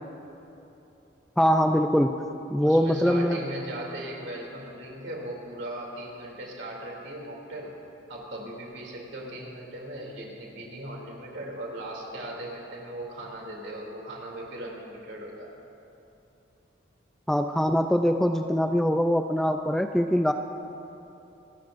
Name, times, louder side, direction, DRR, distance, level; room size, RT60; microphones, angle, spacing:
voice 1, 1.4-2.1 2.5-3.4 17.3-20.3, equal, ahead, 6 dB, 0.3 m, -23 dB
voice 2, 2.6-7.7 8.1-15.5, right 1 dB, 65° right, -1 dB, 2.8 m, -38 dB
27.5 x 13.5 x 2.6 m, 2.9 s
head